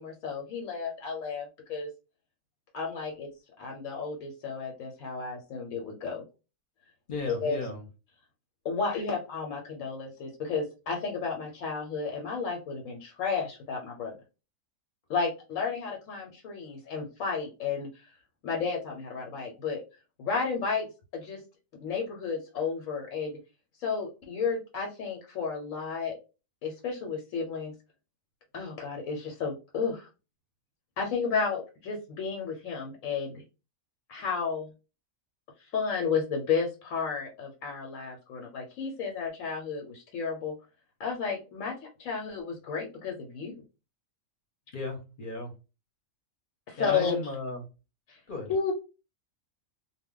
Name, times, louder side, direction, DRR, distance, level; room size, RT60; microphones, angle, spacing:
voice 1, 0.0-1.9 2.7-3.3 3.6-6.2 7.3-7.6 8.6-14.1 15.1-18.1 18.4-19.8 20.2-20.9 21.1-21.4 21.7-23.4 23.8-26.2 26.6-27.7 28.5-30.1 31.0-33.4 34.1-34.7 35.7-40.5 41.0-43.5 46.7-47.2 48.1-48.2 48.5-48.7, left 5 dB, 85° left, 1 dB, 1.1 m, -32 dB
voice 2, 7.1-7.8 44.7-45.5 46.8-47.7 48.3-48.5, left 2 dB, 50° left, 3 dB, 0.8 m, -35 dB
2.2 x 2.2 x 3.6 m, 0.30 s
omnidirectional pair, 1.4 m